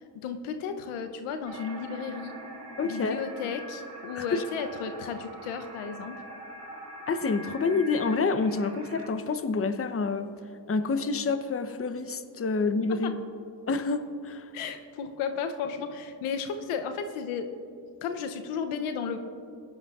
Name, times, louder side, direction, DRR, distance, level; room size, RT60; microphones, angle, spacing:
voice 1, 0.1-2.4 2.8-6.2 13.0-13.1 14.5-17.5 18.0-19.2, left 6 dB, 85° left, 7 dB, 0.8 m, -34 dB
sound 1, 1.4-9.1, right 1 dB, 50° right, 2.5 m, -43 dB
voice 2, 2.8-3.2 4.1-4.4 7.1-10.3 10.7-13.1 13.7-14.5, left 4 dB, 30° left, 10 dB, 0.8 m, -28 dB
17.0 x 11.0 x 2.4 m, 2.6 s
supercardioid pair, 50°, 49 cm